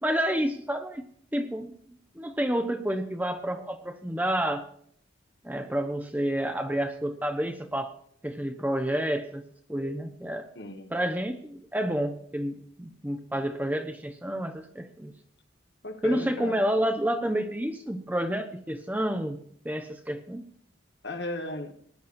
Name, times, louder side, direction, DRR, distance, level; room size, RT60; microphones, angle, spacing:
voice 1, 0.0-1.0 1.3-1.7 2.1-4.7 5.4-7.9 8.2-9.4 9.7-10.5 10.9-15.1 16.0-19.4 19.6-20.5, right 1 dB, 10° right, 0.8 m, -29 dB
voice 2, 10.5-10.9 15.8-16.6 21.0-21.7, left 2 dB, 55° left, 1.5 m, -36 dB
19.0 x 10.0 x 2.6 m
head